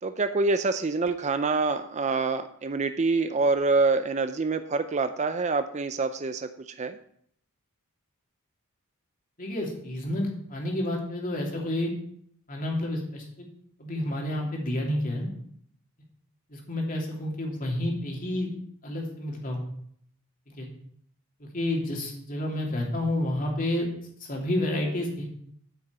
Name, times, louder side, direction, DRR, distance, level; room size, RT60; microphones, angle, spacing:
voice 1, 0.0-7.0, right 3 dB, 30° right, 9 dB, 0.5 m, -26 dB
voice 2, 9.4-11.9 12.5-13.5 13.8-15.3 16.5-18.5 18.8-19.6 20.5-20.7 21.4-23.9 24.2-25.3, left 1 dB, 40° left, -1 dB, 2.9 m, -30 dB
9.0 x 6.1 x 8.0 m, 0.65 s
head